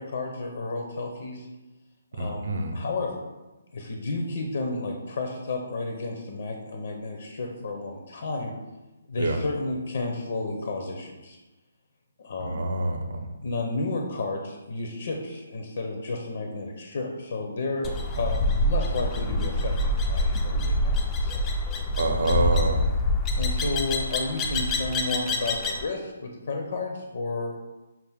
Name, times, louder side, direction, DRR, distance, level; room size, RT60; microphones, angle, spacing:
voice 1, 0.0-1.5 2.1-2.4 2.7-3.3 3.7-8.5 9.1-11.4 12.2-12.6 13.4-21.3 23.4-27.6, left 3 dB, 50° left, 2 dB, 0.6 m, -32 dB
voice 2, 2.1-2.8 9.2-9.4 12.4-13.3 22.0-22.9, right 2 dB, 65° right, 4 dB, 0.7 m, -26 dB
sound 1, 17.8-25.9, left 1 dB, 10° left, 0.3 m, -26 dB
5.6 x 2.5 x 3.5 m, 1.1 s
hypercardioid pair, 175°, 0 cm